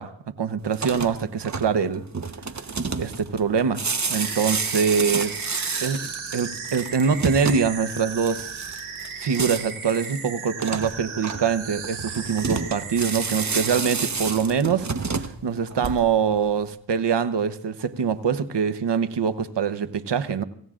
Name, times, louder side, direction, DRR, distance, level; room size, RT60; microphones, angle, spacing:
voice 1, 0.0-2.1 3.0-3.8 4.1-8.5 9.2-14.9 15.4-20.4, right 6 dB, 60° right, 12 dB, 1.0 m, -24 dB
sound 1, 0.6-16.3, right 4 dB, 35° right, 1.1 m, -31 dB
sound 2, 4.1-13.8, right 6 dB, 80° right, 2.6 m, -36 dB
25.5 x 16.0 x 2.5 m, 0.65 s
cardioid pair, 50°, 47 cm